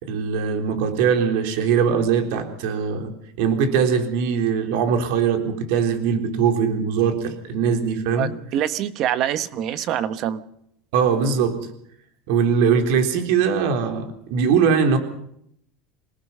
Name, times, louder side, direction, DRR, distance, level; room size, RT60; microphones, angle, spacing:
voice 1, 0.0-3.1 3.4-8.3 10.9-11.6 12.3-15.0, right 6 dB, 60° right, 5 dB, 3.7 m, -21 dB
voice 2, 8.2-10.4, right 10 dB, 35° right, 12 dB, 1.2 m, -25 dB
27.5 x 18.5 x 5.7 m, 0.72 s
supercardioid pair, 170°, 0 cm